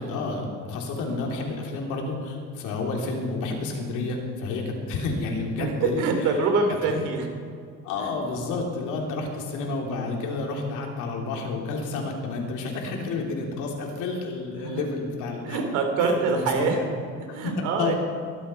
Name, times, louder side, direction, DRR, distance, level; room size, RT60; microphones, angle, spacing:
voice 1, 0.0-6.4 6.8-6.9 7.8-15.6 16.0-16.9 17.3-17.5 17.8-17.9, left 3 dB, 80° left, 1 dB, 3.1 m, -30 dB
voice 2, 5.6-7.3 8.0-8.1 14.6-14.7 15.4-16.8 17.3-17.9, right 4 dB, 80° right, 4 dB, 2.7 m, -25 dB
22.5 x 8.0 x 5.6 m, 2.3 s
cardioid pair, 130°, 30 cm